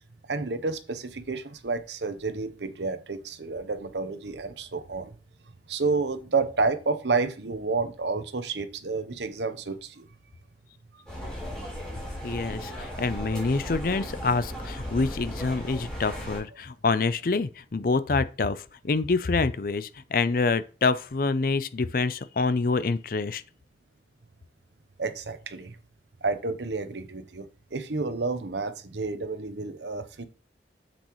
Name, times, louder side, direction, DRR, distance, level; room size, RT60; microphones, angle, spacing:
voice 1, 0.3-5.1 5.7-10.0 25.0-25.8 26.2-30.2, right 3 dB, 75° right, 0.9 m, -30 dB
sound 1, 11.1-16.4, equal, 5° left, 4.2 m, -36 dB
voice 2, 12.2-23.4, left 4 dB, 50° left, 0.5 m, -26 dB
7.8 x 7.1 x 3.1 m
head